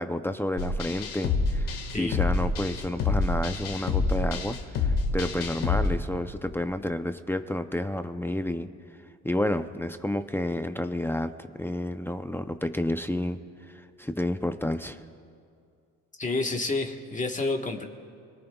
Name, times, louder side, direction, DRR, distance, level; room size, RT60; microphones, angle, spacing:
voice 1, 0.0-8.7 9.2-13.4 13.7-15.0, left 1 dB, 5° left, 8 dB, 0.6 m, -30 dB
sound 1, 0.6-5.9, left 4 dB, 85° left, 1.8 m, -27 dB
voice 2, 16.2-17.8, left 3 dB, 25° left, 2 dB, 1.4 m, -29 dB
29.0 x 18.5 x 2.3 m, 2.3 s
cardioid pair, 100°, 33 cm